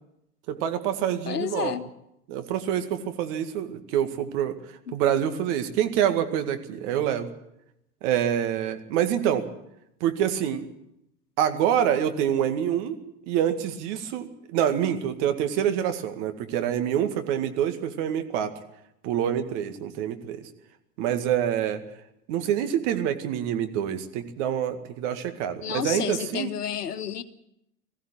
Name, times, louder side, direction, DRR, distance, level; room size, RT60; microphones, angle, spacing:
voice 1, 0.5-1.7 2.3-4.6 4.9-7.3 8.0-9.5 10.0-10.6 11.4-13.0 13.3-18.5 19.0-20.4 21.0-21.8 22.3-26.5, right 10 dB, 45° right, 8 dB, 2.1 m, -26 dB
voice 2, 1.3-1.8 25.6-27.2, left 8 dB, 75° left, 11 dB, 1.3 m, -30 dB
20.5 x 15.5 x 9.0 m, 0.81 s
figure-of-eight pair, 90°, 47 cm